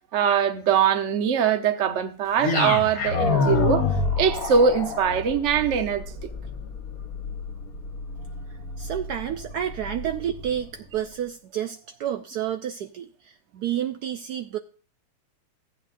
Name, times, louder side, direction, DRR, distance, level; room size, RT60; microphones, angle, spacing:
voice 1, 0.1-3.8 4.2-6.0, right 7 dB, 55° right, 0.8 m, -22 dB
sound 1, 2.4-10.6, left 4 dB, 45° left, 1.8 m, -28 dB
voice 2, 8.5-14.6, right 10 dB, 80° right, 0.8 m, -30 dB
14.5 x 9.2 x 2.6 m
omnidirectional pair, 2.4 m